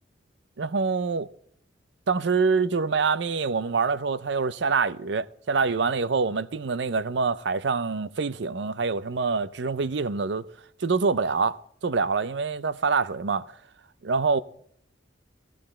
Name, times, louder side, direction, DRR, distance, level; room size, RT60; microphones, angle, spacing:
voice 1, 0.6-1.3 2.1-10.4 10.8-13.4 14.0-14.4, right 4 dB, 65° right, 0.6 m, -25 dB
15.0 x 13.5 x 4.3 m
head